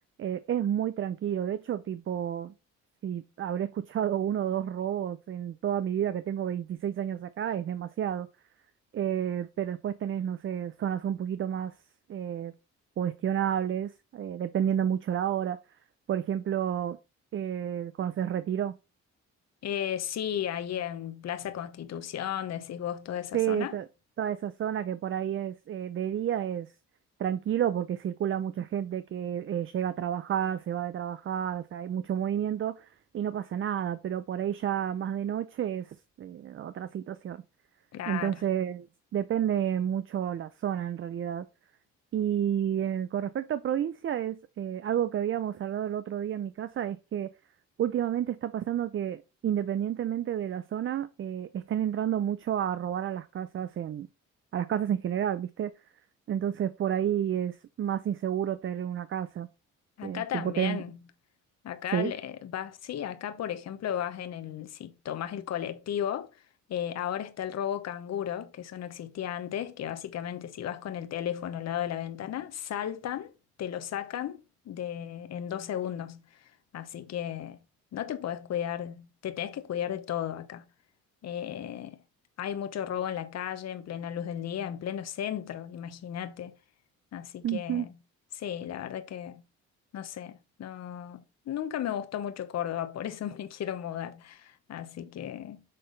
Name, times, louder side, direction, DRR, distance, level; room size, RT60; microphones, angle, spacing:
voice 1, 0.2-2.5 3.0-8.3 8.9-11.7 12.1-12.5 13.0-15.6 16.1-17.0 17.3-18.7 23.3-23.9 24.2-26.7 27.2-32.9 33.1-37.4 38.1-38.9 39.1-41.5 42.1-47.3 47.8-54.1 54.5-55.7 56.3-59.5 60.0-60.8 61.9-62.1 87.4-87.9, right 9 dB, 45° right, 0.5 m, -30 dB
voice 2, 19.6-23.8 37.9-38.4 60.0-61.0 61.6-66.3 66.7-73.3 73.6-77.6 77.9-80.6 81.2-82.0 82.4-86.6 87.1-87.9 88.3-89.4 89.9-95.6, left 10 dB, 60° left, 0.9 m, -35 dB
6.6 x 3.7 x 3.9 m
cardioid pair, 90°, 30 cm